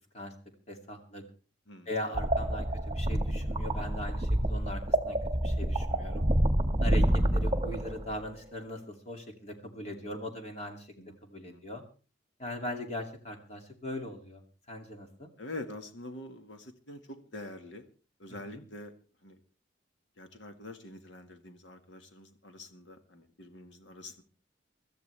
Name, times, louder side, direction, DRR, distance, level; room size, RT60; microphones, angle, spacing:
voice 1, 0.7-1.2 1.9-6.2 6.8-10.9 11.3-11.8 12.4-14.4 14.7-15.3 18.5-18.6, left 1 dB, 35° left, 3 dB, 2.5 m, -40 dB
sound 1, 2.1-8.2, right 1 dB, 25° right, 1.6 m, -28 dB
voice 2, 15.4-17.9 18.2-18.9 19.2-19.4 20.2-24.2, left 2 dB, 75° left, 7 dB, 1.7 m, -45 dB
24.0 x 13.5 x 3.3 m, 0.36 s
head